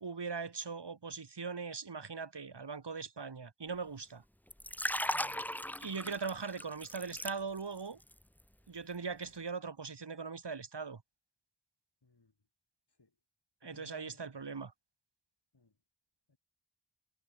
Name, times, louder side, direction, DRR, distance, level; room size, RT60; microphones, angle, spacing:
voice 1, 0.0-4.2 5.8-8.0 8.7-11.0 13.6-14.7, right 5 dB, 85° right, 1.9 m, -40 dB
Liquid, 4.5-7.8 8.1-8.4, equal, 5° left, 1.4 m, -37 dB
voice 2, 5.1-5.6 5.8-6.1 12.0-12.3 12.9-13.1 13.6-14.3 15.5-15.7 16.3-16.4, left 3 dB, 75° left, 6.7 m, -62 dB
wide cardioid pair, 40°, 41 cm